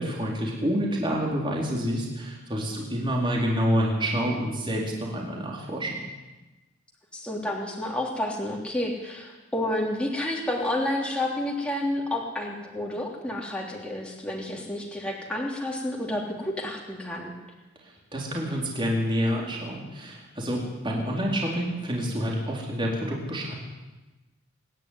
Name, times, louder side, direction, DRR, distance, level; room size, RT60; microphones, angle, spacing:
voice 1, 0.0-6.0 18.1-23.5, equal, 25° right, -2 dB, 4.3 m, -28 dB
voice 2, 7.1-17.3, left 1 dB, 5° left, -2 dB, 3.2 m, -30 dB
25.5 x 11.0 x 9.6 m, 1.1 s
head